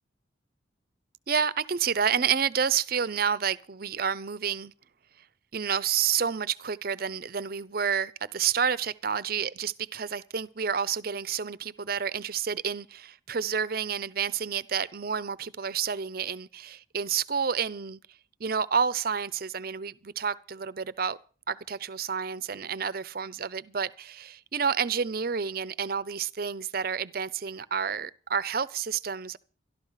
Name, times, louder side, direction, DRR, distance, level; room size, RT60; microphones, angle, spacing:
voice 1, 1.3-4.7 5.5-18.0 18.4-21.2 21.5-29.4, right 7 dB, 50° right, 0.6 m, -29 dB
13.0 x 12.0 x 5.6 m
head